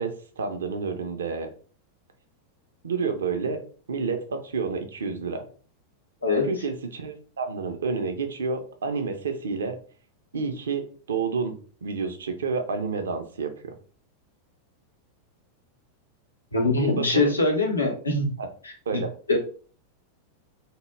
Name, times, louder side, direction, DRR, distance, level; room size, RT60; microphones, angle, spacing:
voice 1, 0.0-1.5 2.8-3.6 3.9-5.5 6.5-9.8 10.3-13.7 16.7-17.4 18.4-18.5 18.9-19.1, right 5 dB, 65° right, 6 dB, 0.5 m, -29 dB
voice 2, 16.5-18.3 18.6-19.0 19.3-19.4, left 3 dB, 80° left, 1 dB, 0.7 m, -23 dB
2.2 x 2.1 x 3.0 m, 0.40 s
figure-of-eight pair, 90°, 0 cm